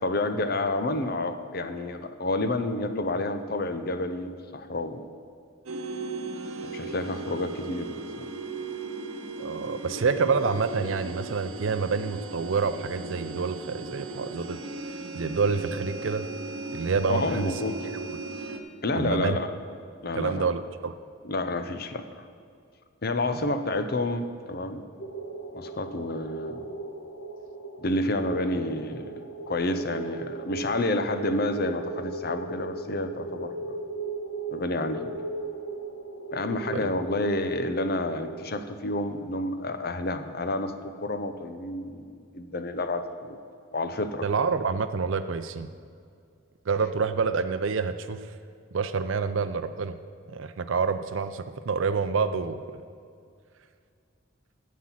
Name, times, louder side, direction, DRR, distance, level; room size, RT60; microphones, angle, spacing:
voice 1, 0.0-5.1 6.6-8.3 17.1-17.9 18.8-19.5 20.0-20.5 21.2-22.2 23.0-24.8 25.5-26.7 27.8-29.1 29.5-33.7 34.5-35.1 36.3-40.7 41.0-43.4 43.7-44.3, left 2 dB, 45° left, 9 dB, 0.7 m, -29 dB
sound 1, 5.7-18.6, right 3 dB, 85° right, 1.0 m, -37 dB
voice 2, 9.4-14.6 15.1-16.3 16.7-17.6 18.9-19.4 20.2-20.9 36.7-36.9 44.2-45.7 46.7-48.3 48.7-50.0 50.3-52.8, right 5 dB, 65° right, 9 dB, 0.5 m, -27 dB
sound 2, 25.0-38.3, right 3 dB, 85° left, 1.2 m, -37 dB
9.8 x 7.4 x 7.4 m, 2.3 s
head